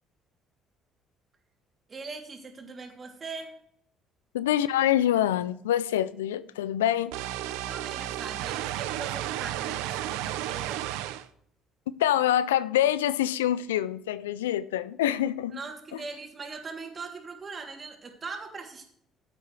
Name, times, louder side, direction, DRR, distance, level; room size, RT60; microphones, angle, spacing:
voice 1, 1.9-3.5 7.6-10.8 15.5-18.9, right 4 dB, 35° right, 3.0 m, -40 dB
voice 2, 4.3-7.1 12.0-15.6, left 12 dB, 85° left, 0.4 m, -25 dB
sound 1, 7.1-11.3, right 13 dB, 75° right, 0.6 m, -33 dB
15.0 x 8.3 x 3.3 m
hypercardioid pair, 55°, 0 cm